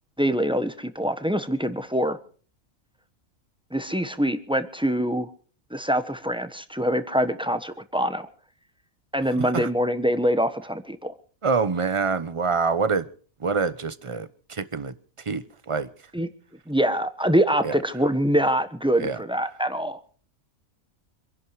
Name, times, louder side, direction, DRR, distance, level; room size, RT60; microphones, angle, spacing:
voice 1, 0.2-2.2 3.7-5.3 5.7-8.3 9.1-11.1 16.1-16.3 16.7-20.0, equal, 5° right, 1.1 m, -24 dB
voice 2, 9.4-9.7 11.4-13.1 13.4-14.9 15.3-15.9 17.6-17.7 19.0-19.2, right 5 dB, 25° right, 0.8 m, -26 dB
26.5 x 11.0 x 4.8 m
omnidirectional pair, 1.4 m